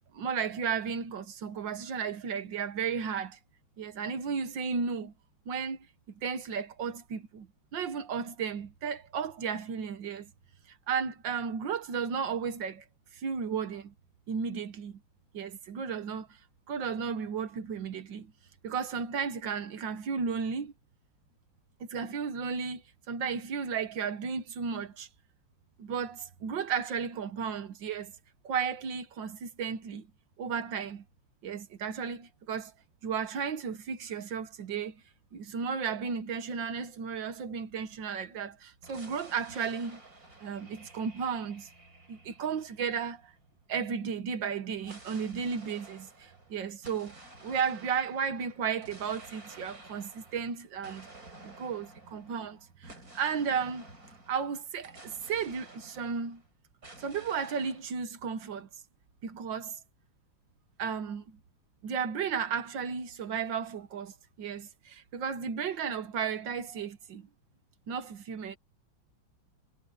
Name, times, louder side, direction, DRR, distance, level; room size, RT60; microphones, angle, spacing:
voice 1, 0.1-3.4 3.8-5.1 5.5-7.5 7.7-10.3 10.9-12.8 13.1-13.9 14.3-15.0 15.3-16.4 16.7-18.3 18.6-20.7 21.9-22.8 23.1-25.1 25.8-28.1 28.4-30.1 30.4-31.0 31.4-32.7 33.0-35.0 35.3-40.0 40.4-41.7 42.1-43.3 43.7-51.1 51.4-53.8 54.3-56.4 57.0-58.7 59.2-59.8 60.8-61.4 61.8-67.3 67.9-68.6, right 6 dB, 70° right, 2.0 m, -34 dB
sound 1, 38.8-43.5 44.8-56.5 56.8-57.9, right 2 dB, 45° right, 6.0 m, -52 dB
omnidirectional pair, 2.1 m